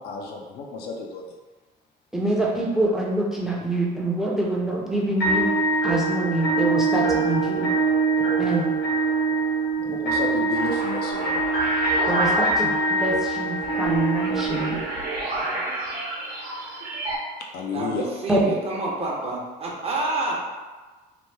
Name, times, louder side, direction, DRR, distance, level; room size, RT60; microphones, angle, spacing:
voice 1, 0.0-1.3 9.8-11.5 17.4-18.1, left 4 dB, 70° left, 0 dB, 0.5 m, -32 dB
voice 2, 2.1-5.5 5.8-7.7 8.4-8.8 9.8-10.0 12.1-14.8 18.3-18.4, right 1 dB, 5° right, -3 dB, 0.6 m, -25 dB
sound 1, 5.2-15.2, right 3 dB, 90° left, 1.3 m, -23 dB
sound 2, 10.5-17.2, right 2 dB, 70° right, 0.9 m, -31 dB
voice 3, 17.7-20.4, right 2 dB, 35° right, -3 dB, 0.8 m, -28 dB
2.9 x 2.1 x 3.3 m, 1.3 s
cardioid pair, 110°, 17 cm